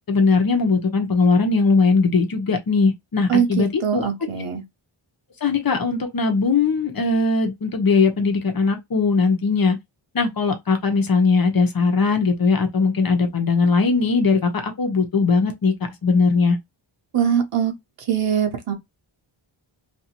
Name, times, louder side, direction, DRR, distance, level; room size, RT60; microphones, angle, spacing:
voice 1, 0.1-4.1 5.4-9.8 10.1-15.7 16.0-16.6, left 4 dB, 45° left, 0.9 m, -19 dB
voice 2, 3.3-4.6 17.1-17.7 18.0-18.7, right 8 dB, 90° right, 0.9 m, -22 dB
2.6 x 2.6 x 2.9 m
wide cardioid pair, 70°, 50 cm